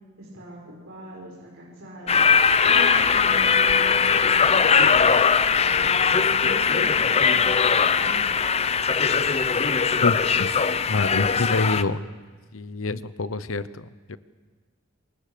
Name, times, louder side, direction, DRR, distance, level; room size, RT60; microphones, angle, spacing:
voice 1, 0.2-8.2, equal, 75° right, -5 dB, 6.0 m, -41 dB
sound 1, 2.1-11.8, left 6 dB, 30° left, 0.7 m, -20 dB
voice 2, 10.0-10.5 10.9-12.0 12.5-14.2, left 3 dB, 75° left, 15 dB, 0.9 m, -27 dB
27.5 x 24.5 x 6.8 m, 1.4 s
head